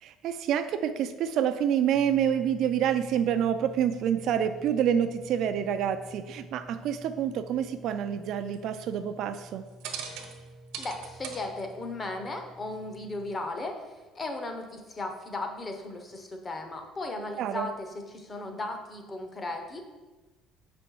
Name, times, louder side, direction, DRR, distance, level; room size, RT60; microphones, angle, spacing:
voice 1, 0.0-9.6 17.4-17.7, right 9 dB, 50° right, 10 dB, 0.3 m, -27 dB
sound 1, 1.9-13.3, right 3 dB, 85° right, 1.0 m, -45 dB
voice 2, 10.8-13.8 14.1-19.8, left 2 dB, 20° left, 5 dB, 0.7 m, -36 dB
6.3 x 5.2 x 4.6 m, 1.2 s
cardioid pair, 165°, 0 cm